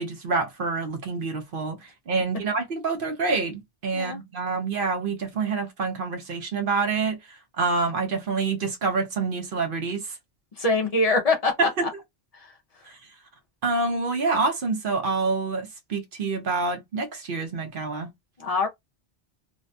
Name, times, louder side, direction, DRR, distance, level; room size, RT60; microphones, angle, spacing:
voice 1, 0.0-7.2 7.6-10.2 11.6-11.9 12.9-13.0 13.6-18.1, right 4 dB, 55° right, 0.7 m, -27 dB
voice 2, 10.6-11.7 18.4-18.7, left 3 dB, 50° left, 0.4 m, -23 dB
2.5 x 2.1 x 2.5 m
omnidirectional pair, 1.2 m